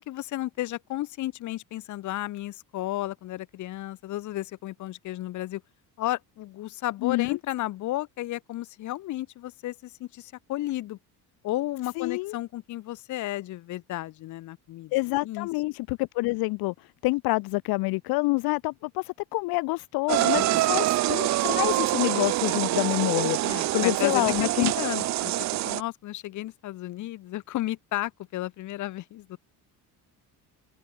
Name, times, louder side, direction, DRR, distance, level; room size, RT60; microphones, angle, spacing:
voice 1, 0.0-5.6 6.0-11.0 11.4-14.9 15.2-15.5 20.3-20.8 23.4-25.3 25.6-29.4, left 15 dB, 50° left, 1.0 m, -33 dB
voice 2, 7.0-7.4 12.0-12.4 14.9-24.7, left 23 dB, 70° left, 0.6 m, -27 dB
sound 1, 20.1-25.8, right 16 dB, 45° right, 0.6 m, -25 dB
open air
cardioid pair, 170°, 38 cm